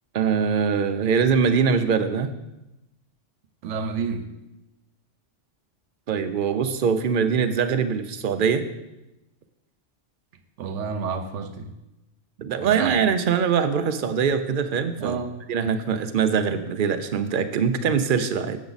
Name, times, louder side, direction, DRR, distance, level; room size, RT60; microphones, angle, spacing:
voice 1, 0.1-2.3 6.1-8.7 12.4-15.2 15.5-18.6, right 6 dB, 60° right, 9 dB, 0.6 m, -23 dB
voice 2, 3.6-4.3 10.6-11.7 12.6-13.0 15.0-15.4, right 5 dB, 80° right, 9 dB, 1.0 m, -30 dB
7.2 x 7.0 x 4.0 m, 0.96 s
omnidirectional pair, 1.2 m